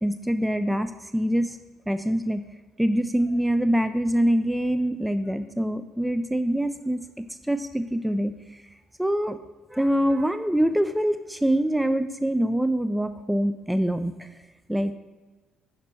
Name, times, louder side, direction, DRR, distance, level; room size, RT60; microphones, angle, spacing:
voice 1, 0.0-1.6 1.9-2.4 2.8-8.6 9.0-9.4 9.7-14.3 14.7-15.0, equal, 5° right, 11 dB, 0.3 m, -25 dB
5.9 x 5.1 x 4.2 m, 1.3 s
hypercardioid pair, 60°, 0 cm